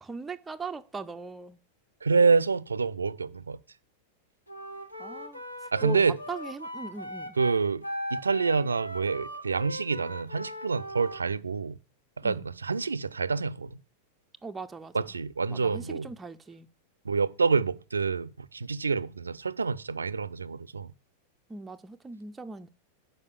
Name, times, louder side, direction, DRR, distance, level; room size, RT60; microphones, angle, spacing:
voice 1, 0.0-1.6 5.0-5.4 5.8-7.4 12.2-12.4 14.4-14.9 15.5-16.7 21.5-22.7, right 4 dB, 10° right, 0.4 m, -39 dB
voice 2, 2.0-3.6 5.7-6.2 7.4-7.9 8.1-11.8 12.2-13.8 14.9-16.1 17.1-20.9, right 4 dB, 75° right, 0.4 m, -27 dB
Wind instrument woodwind instrument, 4.5-11.2, equal, 85° left, 1.0 m, -38 dB
6.3 x 5.1 x 7.0 m
figure-of-eight pair, 90°, 0 cm